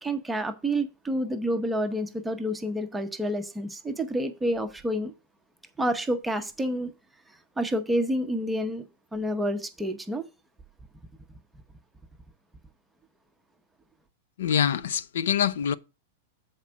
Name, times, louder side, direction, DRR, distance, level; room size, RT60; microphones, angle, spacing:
voice 1, 0.0-5.1 5.8-6.9 7.6-8.8 9.1-10.2, equal, 5° right, 0.7 m, -28 dB
voice 2, 14.4-15.7, left 8 dB, 80° left, 0.5 m, -25 dB
7.2 x 4.4 x 6.2 m
supercardioid pair, 160°, 0 cm